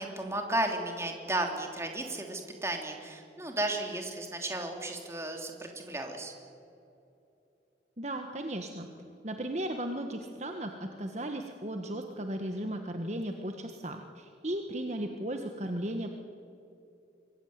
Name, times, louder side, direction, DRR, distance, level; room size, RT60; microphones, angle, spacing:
voice 1, 0.0-6.3, right 1 dB, 15° right, 3 dB, 3.3 m, -34 dB
voice 2, 8.0-8.9 9.2-16.2, right 1 dB, 40° right, 4 dB, 1.5 m, -36 dB
25.0 x 21.0 x 9.5 m, 2.8 s
head